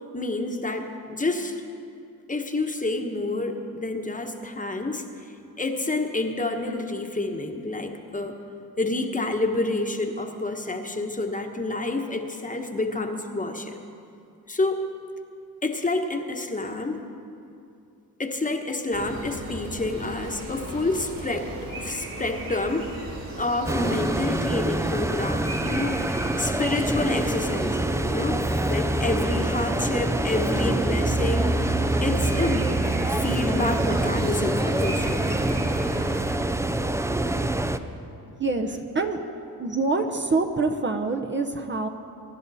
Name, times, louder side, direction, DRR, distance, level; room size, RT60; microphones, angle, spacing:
voice 1, 0.1-1.6 2.3-5.0 5.6-8.4 8.8-13.8 14.5-14.8 15.6-17.0 18.2-22.9 23.4-26.0 26.4-28.4 28.7-32.7 33.1-35.3, left 2 dB, 20° left, 4 dB, 1.3 m, -28 dB
sound 1, 18.9-36.2, right 1 dB, 65° right, 3.9 m, -36 dB
sound 2, 23.7-37.8, right 1 dB, 10° right, 0.5 m, -25 dB
voice 2, 38.4-39.2 39.6-41.9, right 3 dB, 30° right, 4 dB, 0.9 m, -25 dB
23.0 x 10.5 x 4.2 m, 2.6 s
cardioid pair, 80°, 37 cm